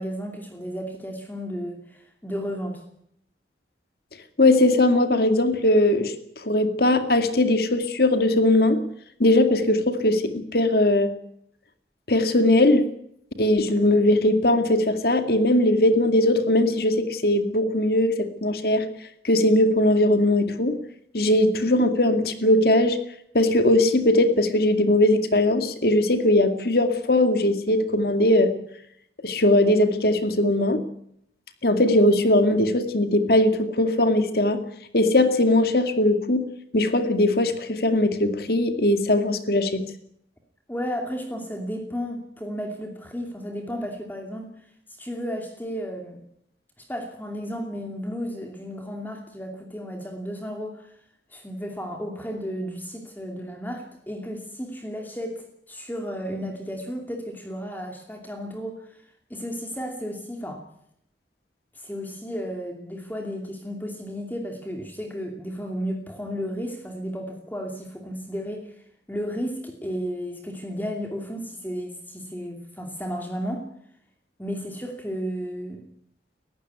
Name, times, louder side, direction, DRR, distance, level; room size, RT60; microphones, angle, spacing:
voice 1, 0.0-2.8 40.7-44.5 45.0-46.2 46.8-51.0 51.3-59.0 59.3-60.6 61.7-68.7 69.1-73.7 74.4-75.8, equal, 10° left, 3 dB, 2.6 m, -33 dB
voice 2, 4.4-6.1 6.4-8.8 9.2-11.1 12.1-12.9 13.4-18.8 19.2-20.8 21.1-23.0 23.3-28.5 29.2-30.8 31.6-34.6 34.9-36.4 36.7-39.8, left 1 dB, 60° left, 8 dB, 2.2 m, -20 dB
20.0 x 15.0 x 9.6 m, 0.72 s
head